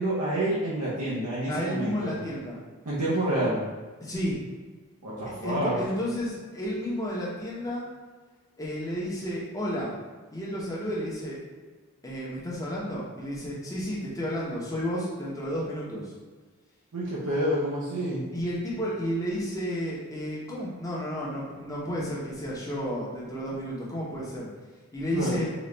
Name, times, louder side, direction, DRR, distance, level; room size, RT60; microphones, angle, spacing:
voice 1, 0.0-2.1 2.8-3.6 5.0-5.8 16.9-18.2 25.1-25.4, right 1 dB, 85° right, -7 dB, 0.8 m, -28 dB
voice 2, 1.5-2.6 4.0-4.4 5.4-7.9 8.6-9.9 10.3-11.4 12.0-16.1 18.3-24.5 24.9-25.4, equal, 15° left, -6 dB, 0.8 m, -32 dB
4.0 x 2.4 x 3.2 m, 1.4 s
head